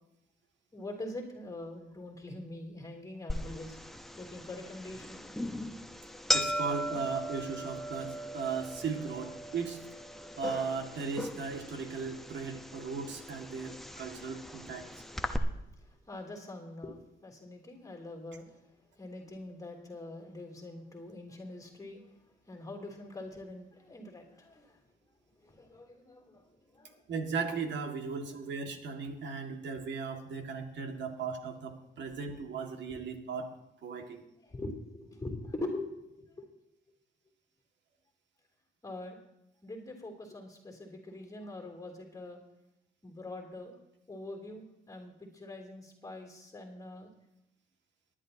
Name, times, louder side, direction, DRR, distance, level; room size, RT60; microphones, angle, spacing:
voice 1, 0.7-3.8 4.2-5.5 6.1-6.2 15.3-15.5 15.8-18.5 19.0-22.1 22.5-24.8 25.4-27.0 32.9-33.0 34.4-36.5 38.8-39.2 39.6-42.4 43.0-43.7 44.1-47.1, left 2 dB, 15° left, 1 dB, 3.2 m, -44 dB
sound 1, 3.3-15.4, equal, ahead, 1.0 m, -38 dB
voice 2, 6.3-9.8 10.4-14.9 27.1-33.5 33.8-34.2, right 5 dB, 65° right, 4 dB, 2.1 m, -37 dB
19.5 x 11.0 x 2.9 m, 0.85 s
cardioid pair, 90°, 20 cm